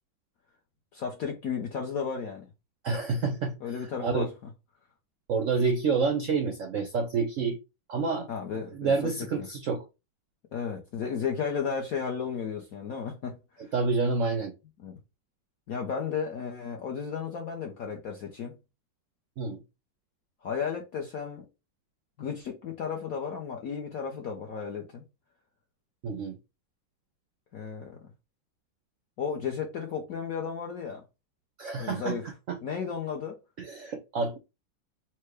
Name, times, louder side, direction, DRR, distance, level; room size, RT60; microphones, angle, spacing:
voice 1, 0.9-2.5 3.6-4.3 8.3-9.5 10.5-13.7 14.8-15.0 15.7-18.5 20.4-21.4 22.2-25.0 27.5-28.0 29.2-31.0 31.8-32.2 32.6-33.4, left 6 dB, 65° left, 0.9 m, -34 dB
voice 2, 2.8-3.5 3.8-4.3 5.3-7.6 7.9-8.3 8.5-9.8 13.7-14.5 19.4-19.6 26.0-26.4 31.6-32.2 32.5-32.6 33.6-34.4, right 4 dB, 75° right, 0.7 m, -28 dB
4.4 x 2.1 x 4.6 m
omnidirectional pair, 2.1 m